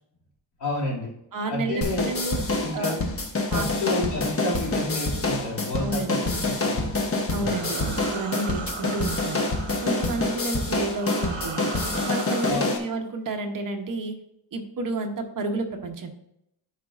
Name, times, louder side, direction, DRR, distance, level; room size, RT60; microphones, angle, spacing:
voice 1, 0.6-1.1 1.5-2.1 2.6-3.0 3.5-6.2 6.6-7.6 12.5-12.8, left 2 dB, 65° left, -5 dB, 2.6 m, -30 dB
voice 2, 1.3-2.4 2.7-3.0 3.5-3.7 5.8-6.5 7.3-9.5 9.8-11.7 12.0-14.1 14.5-16.1, right 2 dB, 45° right, 4 dB, 0.9 m, -31 dB
sound 1, 1.8-12.8, left 2 dB, 30° left, 0.9 m, -27 dB
sound 2, 6.5-12.5, right 5 dB, 80° right, 1.0 m, -38 dB
11.5 x 4.9 x 2.5 m, 0.80 s
wide cardioid pair, 170°, 44 cm